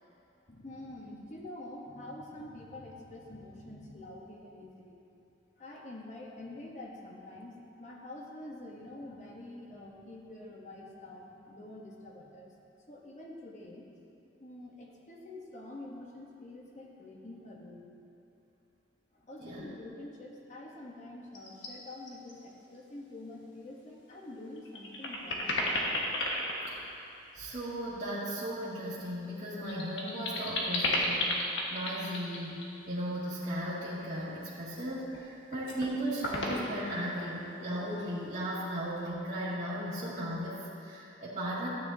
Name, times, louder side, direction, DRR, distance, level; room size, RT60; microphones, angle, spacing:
voice 1, 0.5-5.0 5.6-12.5 12.9-13.8 14.4-17.9 19.1-25.8, left 1 dB, 40° left, -2 dB, 1.1 m, -46 dB
sound 1, 21.3-21.7 22.1-22.4 22.8-22.9 24.1-24.2 24.6-27.6 29.2-32.7 34.6-35.2 35.5-35.9 36.2-37.3, left 1 dB, 85° left, 1.5 m, -33 dB
voice 2, 27.3-32.6 32.9-41.7, equal, 40° right, -11 dB, 1.9 m, -36 dB
13.5 x 9.4 x 2.8 m, 2.9 s
head